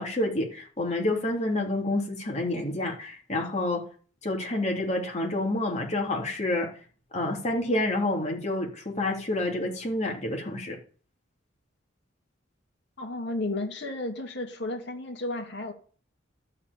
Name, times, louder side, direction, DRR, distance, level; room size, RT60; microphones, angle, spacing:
voice 1, 0.0-3.8 4.2-6.7 7.1-10.8, left 1 dB, 35° left, 3.2 m, -28 dB
voice 2, 13.0-15.7, left 2 dB, 65° left, 2.4 m, -33 dB
12.5 x 5.0 x 8.4 m
head